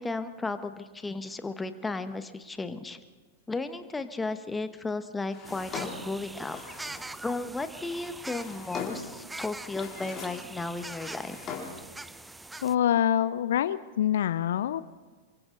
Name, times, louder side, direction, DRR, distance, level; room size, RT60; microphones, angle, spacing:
voice 1, 0.0-3.0 3.5-6.6 7.2-11.4, left 3 dB, 10° left, 10 dB, 1.3 m, -34 dB
Drawer open or close, 5.3-7.1 7.9-9.2 9.6-10.5 10.8-11.9, left 5 dB, 30° left, 5.0 m, -40 dB
sound 1, 5.4-12.8, right 2 dB, 10° right, 0.6 m, -43 dB
voice 2, 12.6-14.8, left 11 dB, 65° left, 15 dB, 0.6 m, -25 dB
28.0 x 23.5 x 4.0 m, 1.3 s
figure-of-eight pair, 95°, 0 cm